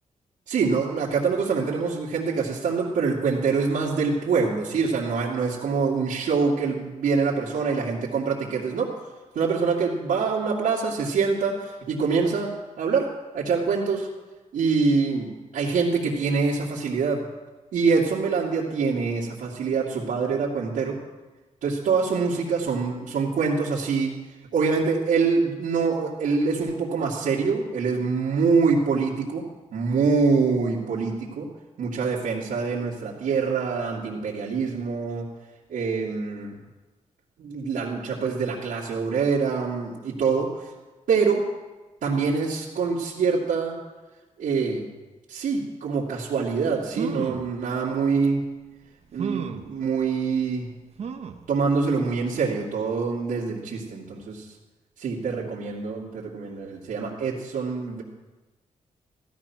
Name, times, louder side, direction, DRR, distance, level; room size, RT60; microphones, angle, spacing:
voice 1, 0.5-9.0 9.3-14.1 14.5-17.2 17.7-21.0 21.6-24.1 24.5-31.5 31.8-35.3 35.7-36.6 37.4-40.5 41.1-41.4 42.0-43.8 44.4-44.9 45.3-48.4 49.1-50.7 51.5-54.4 55.0-58.0, right 5 dB, 85° right, -8 dB, 2.6 m, -25 dB
sound 1, 46.5-46.6 46.9-47.5 48.2-48.3 49.2-49.7 51.0-51.5 52.0-52.1 52.4-52.5, right 6 dB, 50° right, 1.0 m, -32 dB
16.0 x 13.0 x 6.0 m, 1.2 s
wide cardioid pair, 160°, 13 cm